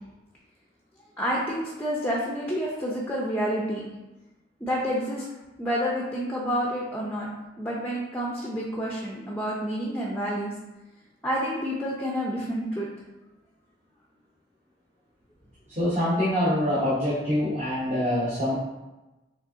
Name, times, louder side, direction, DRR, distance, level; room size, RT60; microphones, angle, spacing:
voice 1, 1.2-3.8 4.6-5.3 5.6-7.3 7.6-10.5 11.2-12.9, equal, 10° left, -4 dB, 0.5 m, -29 dB
voice 2, 15.7-18.5, left 1 dB, 35° right, -10 dB, 1.0 m, -25 dB
5.1 x 3.4 x 2.7 m, 1.1 s
head